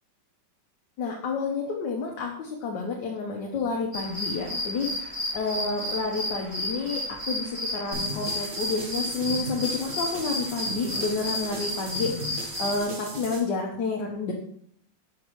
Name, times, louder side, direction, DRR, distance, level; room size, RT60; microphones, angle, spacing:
voice 1, 1.0-5.1 5.3-12.1 12.4-14.3, left 4 dB, 75° left, 0 dB, 1.5 m, -30 dB
sound 1, 3.9-12.8, left 1 dB, 25° right, 2.1 m, -32 dB
sound 2, 7.9-13.4, right 1 dB, 55° right, 1.6 m, -37 dB
6.5 x 6.4 x 3.0 m, 0.65 s
omnidirectional pair, 1.9 m